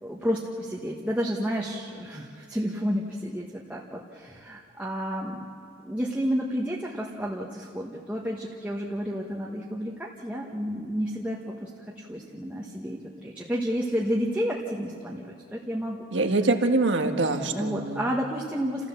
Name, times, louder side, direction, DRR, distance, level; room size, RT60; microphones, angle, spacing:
voice 1, 0.0-5.4 5.8-16.0 17.4-18.9, equal, 10° right, -3 dB, 1.3 m, -31 dB
voice 2, 16.1-18.1, right 2 dB, 80° right, 5 dB, 1.6 m, -24 dB
29.0 x 15.5 x 7.2 m, 2.4 s
head